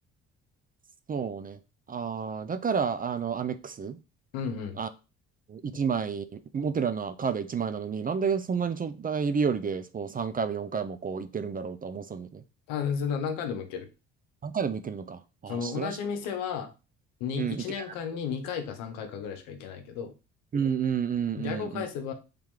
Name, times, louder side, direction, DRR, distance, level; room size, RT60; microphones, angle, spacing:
voice 1, 1.1-1.6 1.9-4.0 4.8-4.9 5.5-12.4 14.4-16.0 17.3-17.9 20.5-21.9, right 6 dB, 25° right, 10 dB, 0.4 m, -30 dB
voice 2, 4.3-4.8 12.7-13.9 15.5-16.7 17.2-20.1 21.4-22.1, left 7 dB, 75° left, 6 dB, 0.9 m, -33 dB
3.4 x 3.0 x 3.6 m, 0.30 s
hypercardioid pair, 55°, 35 cm